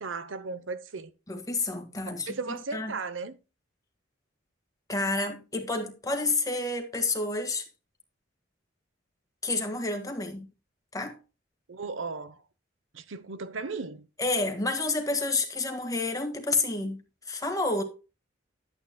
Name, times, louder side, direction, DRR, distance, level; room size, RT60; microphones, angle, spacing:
voice 1, 0.0-1.1 2.3-3.4 11.7-12.4 12.9-14.1, right 4 dB, 80° right, 0.8 m, -36 dB
voice 2, 1.3-3.0 4.9-7.7 9.4-10.5 10.9-11.2 14.2-17.0 17.3-17.8, left 3 dB, 20° left, 1.7 m, -29 dB
11.5 x 8.5 x 2.2 m
head